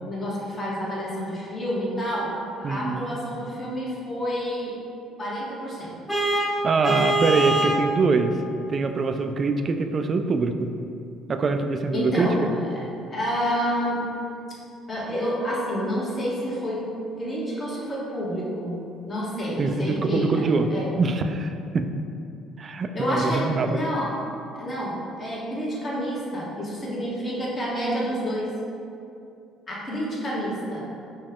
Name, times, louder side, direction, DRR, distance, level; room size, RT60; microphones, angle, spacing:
voice 1, 0.0-4.7 5.2-6.0 11.9-12.4 12.7-12.8 13.1-14.0 14.5-14.6 14.9-16.8 17.2-18.8 19.1-20.4 20.7-21.0 22.9-24.1 24.5-28.5 29.7-30.9, equal, 35° left, -6 dB, 1.3 m, -29 dB
voice 2, 2.6-3.1 6.6-8.3 8.7-10.7 11.3-12.3 19.6-20.7 21.0-21.9 22.6-23.8, right 4 dB, 40° right, 7 dB, 0.3 m, -24 dB
Vehicle horn car horn honking, 6.1-7.9, right 1 dB, 10° left, 1.0 m, -23 dB
5.2 x 2.3 x 3.5 m, 2.6 s
supercardioid pair, 75°, 0 cm